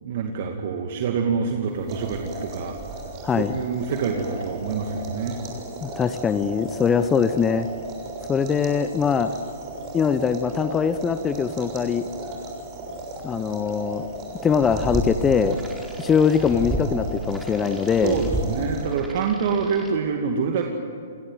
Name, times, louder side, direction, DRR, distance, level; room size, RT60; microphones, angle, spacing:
voice 1, 0.0-2.8 3.3-5.4 18.0-20.6, right 5 dB, 55° right, 3 dB, 2.4 m, -26 dB
sound 1, 1.7-19.1, right 2 dB, 30° right, 6.5 m, -37 dB
voice 2, 3.2-3.5 5.8-7.7 8.3-9.3 9.9-12.1 13.2-14.1 14.4-15.6 16.0-18.2, left 6 dB, 15° left, 11 dB, 1.0 m, -22 dB
sound 2, 14.4-19.9, right 1 dB, 5° right, 4.5 m, -32 dB
29.5 x 18.0 x 9.3 m, 2.4 s
hypercardioid pair, 125°, 0 cm